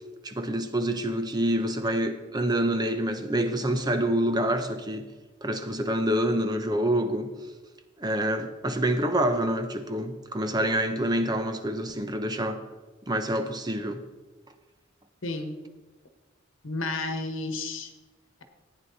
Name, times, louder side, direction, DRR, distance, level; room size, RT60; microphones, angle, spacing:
voice 1, 0.2-5.1 5.4-7.3 8.0-12.6 13.1-14.0, right 1 dB, 20° right, 7 dB, 0.8 m, -27 dB
voice 2, 15.2-15.6 16.6-17.9, left 2 dB, 85° left, 6 dB, 1.5 m, -31 dB
14.5 x 9.4 x 4.1 m, 1.2 s
head